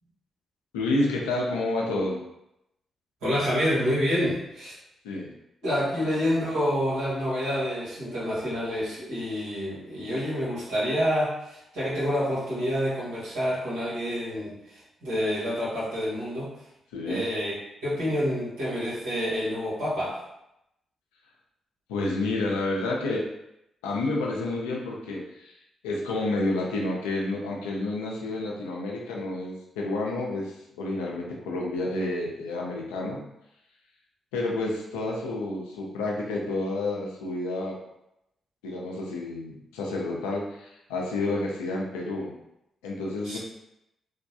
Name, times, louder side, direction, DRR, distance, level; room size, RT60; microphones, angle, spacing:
voice 1, 0.7-2.2 5.0-5.3 6.0-6.1 16.9-17.2 21.9-23.3 23.8-25.5 25.8-33.2 34.3-37.8 38.6-42.3 42.8-43.4, left 2 dB, 85° left, -2 dB, 0.5 m, -29 dB
voice 2, 3.2-4.7 5.6-16.5 17.0-20.2 43.2-43.4, equal, 80° right, -10 dB, 1.5 m, -28 dB
3.4 x 2.2 x 2.7 m, 0.84 s
hypercardioid pair, 40°, 0 cm